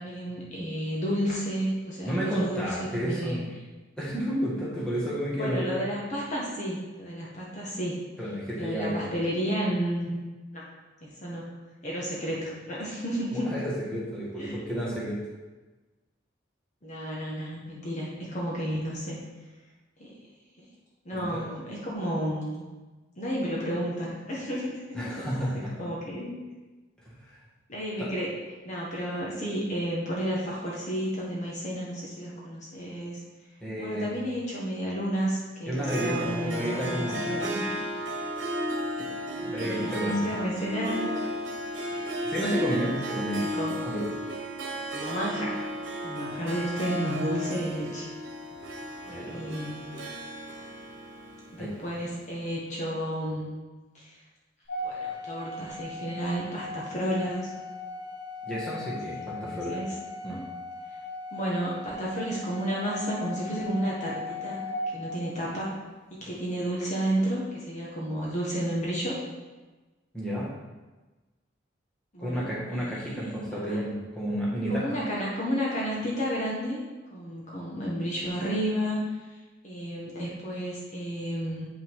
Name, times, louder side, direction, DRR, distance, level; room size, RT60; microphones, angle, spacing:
voice 1, 0.0-3.4 5.3-8.0 8.6-10.1 10.5-10.7 11.0-11.5 11.8-13.5 14.4-14.6 16.8-19.2 20.0-20.2 21.0-22.7 23.2-26.3 27.7-28.3 28.6-33.2 33.8-37.6 39.6-41.2 42.5-42.9 43.5-43.8 44.9-45.6 46.0-48.1 49.3-49.8 51.5-53.5 53.9-54.1 54.8-57.5 59.2-59.9 61.3-64.6 64.9-65.7 66.2-69.2 72.1-73.2 73.5-73.8 74.7-76.8 77.1-79.0 79.6-81.7, equal, 40° left, -5 dB, 1.5 m, -32 dB
voice 2, 2.0-3.4 4.0-5.7 8.2-9.0 13.3-15.2 21.1-21.4 24.9-25.9 27.0-27.4 28.0-28.1 33.6-34.1 35.7-37.2 39.0-40.2 42.2-44.0 49.0-49.4 51.6-51.7 58.4-59.8 60.2-60.4 70.1-70.5 72.2-75.0, equal, 5° left, -7 dB, 1.7 m, -31 dB
Harp, 35.8-52.3, equal, 80° right, 1.2 m, -34 dB
Organ, 54.7-65.5, left 2 dB, 65° left, 2.2 m, -38 dB
8.2 x 5.7 x 3.7 m, 1.2 s
head